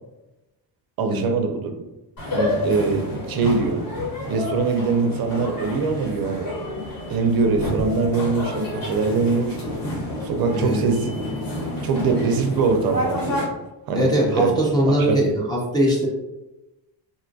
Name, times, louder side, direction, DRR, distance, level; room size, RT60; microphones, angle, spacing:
voice 1, 1.0-1.7 2.3-3.8 4.3-9.6 10.2-11.1 11.8-13.5 13.9-14.5 14.9-15.3, right 4 dB, 55° right, 4 dB, 0.5 m, -23 dB
sound 1, 2.2-13.4, left 1 dB, 50° left, 1.2 m, -30 dB
voice 2, 10.5-10.8 13.9-16.1, equal, 10° left, -5 dB, 0.4 m, -21 dB
3.8 x 2.2 x 2.5 m, 0.99 s
cardioid pair, 135°, 45 cm